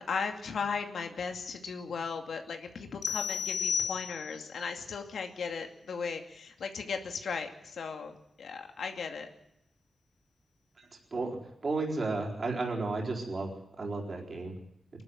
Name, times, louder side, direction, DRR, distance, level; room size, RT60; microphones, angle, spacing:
voice 1, 0.0-9.3, left 5 dB, 85° left, 5 dB, 2.4 m, -37 dB
sound 1, 3.0-4.5, left 7 dB, 60° left, 1.0 m, -33 dB
voice 2, 11.6-13.5 13.8-14.5, right 3 dB, 40° right, -1 dB, 4.3 m, -32 dB
24.0 x 12.0 x 9.8 m, 0.82 s
wide cardioid pair, 135°, 0 cm